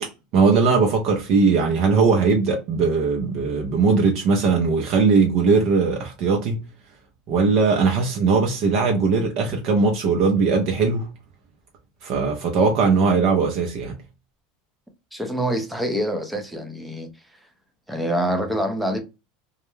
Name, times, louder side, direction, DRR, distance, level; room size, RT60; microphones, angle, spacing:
voice 1, 0.0-6.6 7.3-11.1 12.0-14.0, right 4 dB, 50° right, 0.6 m, -19 dB
voice 2, 15.1-17.1 17.9-19.0, equal, 5° right, 0.5 m, -25 dB
2.3 x 2.1 x 3.1 m
supercardioid pair, 150°, 0 cm